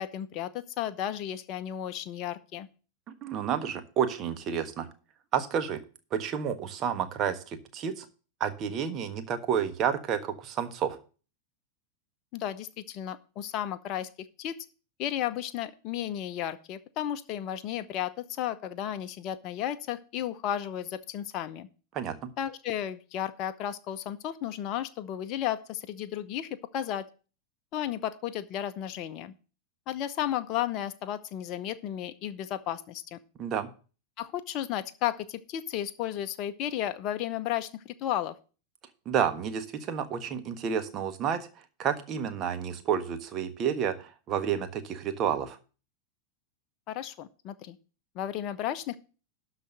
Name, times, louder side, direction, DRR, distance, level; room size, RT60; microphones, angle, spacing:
voice 1, 0.0-2.7 12.3-14.5 15.0-21.7 22.4-27.1 27.7-29.3 29.9-33.2 34.2-38.4 46.9-47.8 48.1-49.0, left 11 dB, 40° left, 11 dB, 0.7 m, -33 dB
voice 2, 3.2-4.9 5.3-5.8 6.1-8.0 8.4-11.0 21.9-22.1 33.4-33.7 39.0-41.5 41.8-45.6, right 8 dB, 30° right, 8 dB, 1.3 m, -30 dB
12.0 x 4.1 x 7.8 m, 0.36 s
figure-of-eight pair, 90°, 0 cm